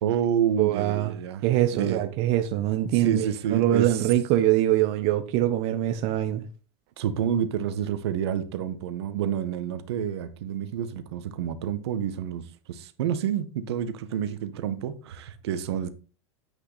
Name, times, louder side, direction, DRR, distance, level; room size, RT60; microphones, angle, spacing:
voice 1, 0.0-1.4 1.8-2.0 2.9-4.1 7.0-15.9, right 9 dB, 70° right, 1.5 m, -29 dB
voice 2, 0.6-1.1 1.4-3.3 3.5-6.4, right 13 dB, 50° right, 1.1 m, -23 dB
9.8 x 8.5 x 4.2 m
hypercardioid pair, 105°, 14 cm